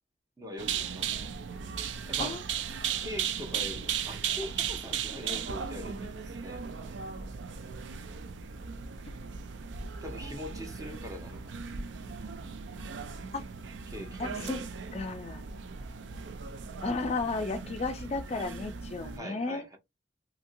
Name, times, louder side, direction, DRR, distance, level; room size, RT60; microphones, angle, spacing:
voice 1, 0.4-1.4 2.1-2.4 3.0-7.1 10.0-11.6 13.9-14.6 19.1-19.8, left 1 dB, 20° right, 0.8 m, -43 dB
sound 1, 0.6-19.2, right 7 dB, 80° right, 0.4 m, -37 dB
voice 2, 14.2-14.6 14.9-15.5 16.8-19.6, left 3 dB, 35° left, 0.4 m, -33 dB
2.8 x 2.7 x 2.5 m
head